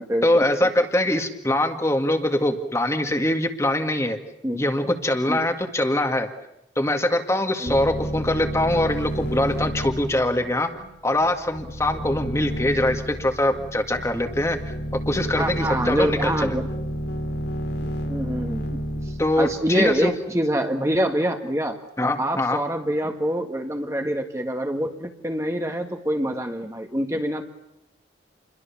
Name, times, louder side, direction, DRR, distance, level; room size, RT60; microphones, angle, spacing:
voice 1, 0.2-4.2 4.5-6.3 6.8-10.7 11.0-14.7 15.1-16.5 19.2-20.1 22.0-22.6, left 1 dB, 15° left, 5 dB, 2.0 m, -23 dB
sound 1, 7.7-20.1, equal, 65° left, 3.0 m, -31 dB
voice 2, 15.3-16.7 17.8-21.8 22.2-27.4, equal, 15° right, 4 dB, 1.7 m, -26 dB
29.0 x 22.5 x 7.2 m, 0.87 s
head